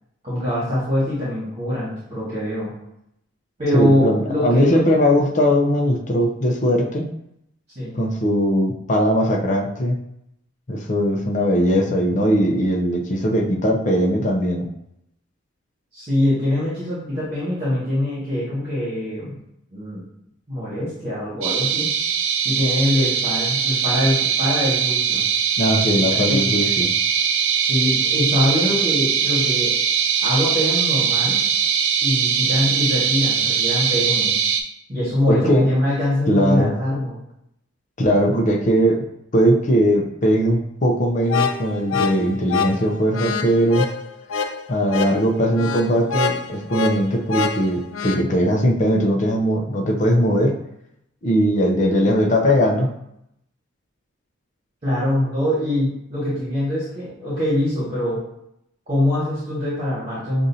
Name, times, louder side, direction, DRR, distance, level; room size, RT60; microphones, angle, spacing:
voice 1, 0.2-2.7 3.6-4.8 7.7-8.0 15.9-19.3 19.7-20.0 20.5-21.9 22.4-25.2 25.9-26.5 27.6-29.7 30.2-31.4 32.0-34.3 34.9-37.2 54.8-58.2 58.9-60.5, left 1 dB, 35° right, -9 dB, 1.6 m, -23 dB
voice 2, 3.7-7.1 7.9-10.0 10.7-14.7 25.6-26.9 35.3-35.7 36.3-36.7 38.0-39.0 39.3-43.9 44.7-50.5 51.2-52.9, equal, 40° left, 1 dB, 0.7 m, -19 dB
sound 1, 21.4-34.6, right 7 dB, 85° right, 0.5 m, -21 dB
sound 2, 41.2-48.2, left 5 dB, 85° left, 0.3 m, -26 dB
6.3 x 2.6 x 2.7 m, 0.79 s
head